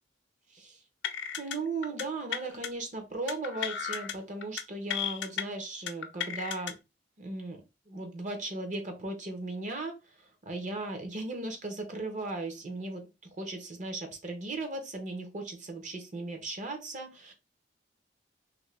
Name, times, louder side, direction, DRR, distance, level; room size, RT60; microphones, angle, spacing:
voice 1, 0.5-0.8 1.4-6.8 7.2-17.3, right 2 dB, 45° right, 5 dB, 0.7 m, -37 dB
sound 1, 1.0-1.6 1.8-2.0 2.3-2.7 3.3-4.1 4.4-4.6 4.9-5.4 5.9-6.7, left 9 dB, 85° left, 0.4 m, -34 dB
2.6 x 2.6 x 3.2 m, 0.27 s
head